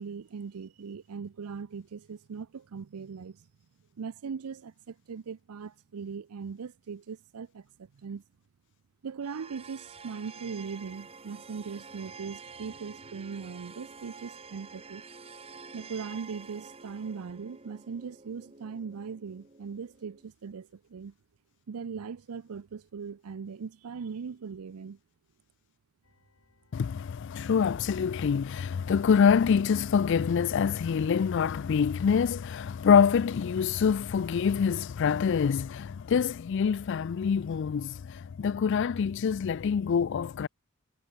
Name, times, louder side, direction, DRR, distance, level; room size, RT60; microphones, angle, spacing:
voice 1, 0.0-3.5 4.0-8.2 9.0-15.0 15.7-21.1 21.7-25.0, right 5 dB, 85° right, 0.5 m, -40 dB
sound 1, 9.2-20.3, right 4 dB, 25° right, 1.5 m, -49 dB
sound 2, 26.0-32.8, left 1 dB, 70° left, 7.3 m, -69 dB
voice 2, 26.7-40.5, left 6 dB, 55° left, 0.3 m, -25 dB
head